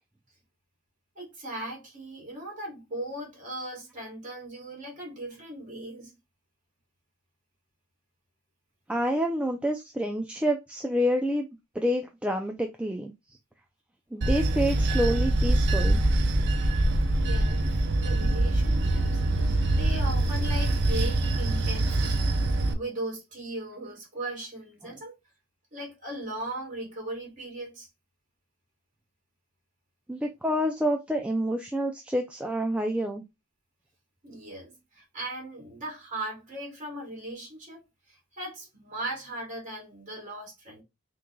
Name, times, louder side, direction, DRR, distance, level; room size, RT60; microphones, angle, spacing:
voice 1, 1.2-6.1 17.1-17.7 18.0-19.2 19.7-22.3 22.7-25.1 25.7-27.9 34.2-37.8 38.1-40.8, right 1 dB, 35° right, 2.5 m, -38 dB
voice 2, 8.9-11.5 11.7-13.1 14.1-16.1 24.8-24.9 30.1-33.2, equal, 5° right, 0.4 m, -28 dB
Bell / Train, 14.2-22.7, right 2 dB, 55° right, 0.7 m, -24 dB
6.0 x 3.2 x 2.3 m
head